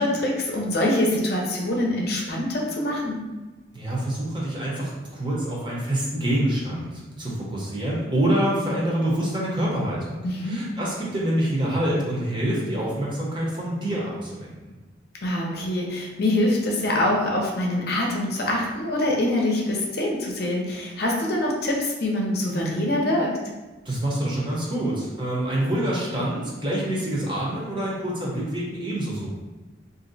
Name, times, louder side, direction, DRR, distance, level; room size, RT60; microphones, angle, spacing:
voice 1, 0.0-3.2 10.2-10.6 15.2-23.4, left 1 dB, 55° left, -2 dB, 0.6 m, -24 dB
voice 2, 3.7-14.7 23.8-29.3, right 1 dB, 25° right, -5 dB, 0.7 m, -26 dB
2.6 x 2.1 x 3.9 m, 1.2 s
head